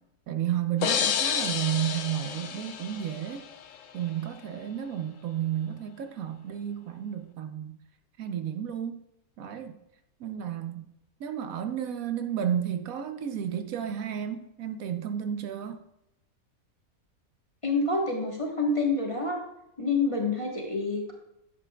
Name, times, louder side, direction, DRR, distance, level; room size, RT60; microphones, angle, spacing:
voice 1, 0.3-3.5 3.9-7.8 8.2-9.0 9.4-9.8 10.2-10.9 11.2-15.8, right 10 dB, 75° right, 7 dB, 1.1 m, -32 dB
sound 1, 0.8-3.6, left 8 dB, 70° left, 1.0 m, -30 dB
voice 2, 17.6-19.4 19.8-21.1, left 3 dB, 25° left, -1 dB, 1.3 m, -27 dB
10.5 x 8.3 x 2.3 m, 0.82 s
omnidirectional pair, 1.5 m